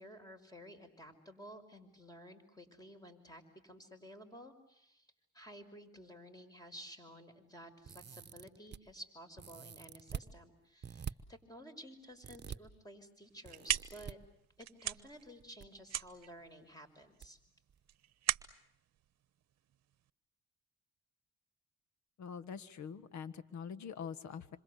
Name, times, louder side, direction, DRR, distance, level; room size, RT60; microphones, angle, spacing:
voice 1, 0.0-5.1 5.3-14.2 14.6-17.4, equal, 10° left, 7 dB, 5.6 m, -53 dB
sound 1, 7.8-8.8 9.4-10.3 10.8-11.1 12.2-12.6 13.4-14.1 15.3-15.7 15.9-16.0 17.2-17.3 17.7-17.8, right 7 dB, 35° right, 1.2 m, -45 dB
sound 2, 13.2-20.1, right 11 dB, 60° right, 1.0 m, -40 dB
voice 2, 22.2-24.6, left 7 dB, 65° left, 14 dB, 1.6 m, -44 dB
27.0 x 26.5 x 8.2 m, 0.76 s
cardioid pair, 90°, 30 cm